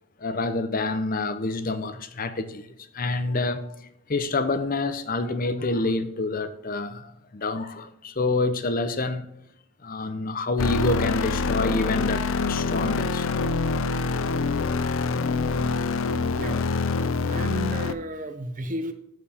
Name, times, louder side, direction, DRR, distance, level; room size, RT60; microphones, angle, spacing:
voice 1, 0.2-3.7 4.1-9.3 9.8-13.3, left 2 dB, 40° left, 0.7 m, -27 dB
sound 1, 10.6-17.9, left 4 dB, 70° left, 0.5 m, -25 dB
voice 2, 16.3-16.7 17.3-18.9, right 1 dB, 40° right, 0.9 m, -32 dB
14.0 x 4.6 x 3.5 m
head